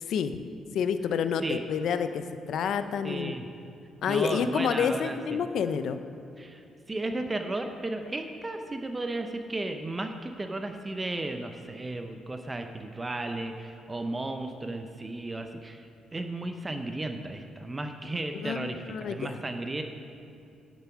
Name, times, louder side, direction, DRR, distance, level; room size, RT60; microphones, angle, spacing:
voice 1, 0.1-0.4 0.7-3.3 4.0-6.0 18.4-19.4, left 7 dB, 70° left, 10 dB, 0.6 m, -29 dB
voice 2, 3.0-3.5 4.1-5.4 6.4-19.8, right 2 dB, 20° right, 6 dB, 0.7 m, -34 dB
11.5 x 7.0 x 6.0 m, 2.5 s
cardioid pair, 90°, 0 cm